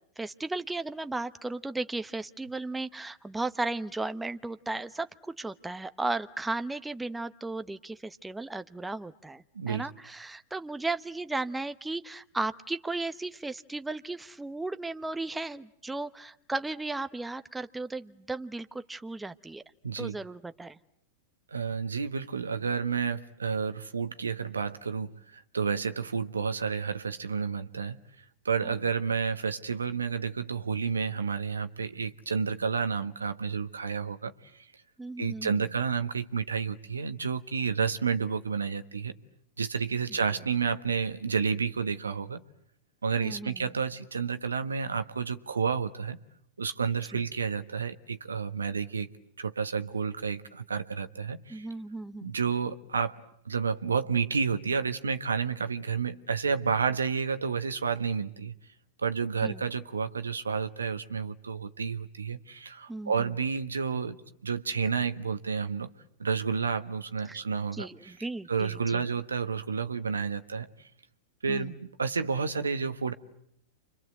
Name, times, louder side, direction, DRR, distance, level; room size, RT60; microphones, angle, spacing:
voice 1, 0.2-19.6 20.0-20.8 35.0-35.6 43.2-43.6 47.1-47.2 51.5-52.3 59.4-59.6 62.9-63.3 67.3-67.4 67.7-69.0 71.5-71.7, right 2 dB, 10° right, 1.0 m, -35 dB
voice 2, 9.5-9.9 19.8-20.1 21.5-28.0 28.4-34.3 35.2-39.1 39.6-42.4 43.0-46.2 46.6-49.1 49.4-51.7 52.2-53.2 53.4-58.5 59.0-65.9 66.2-68.2 68.5-70.7 71.4-73.1, right 5 dB, 90° right, 1.3 m, -30 dB
29.5 x 25.0 x 7.9 m
hypercardioid pair, 100°, 0 cm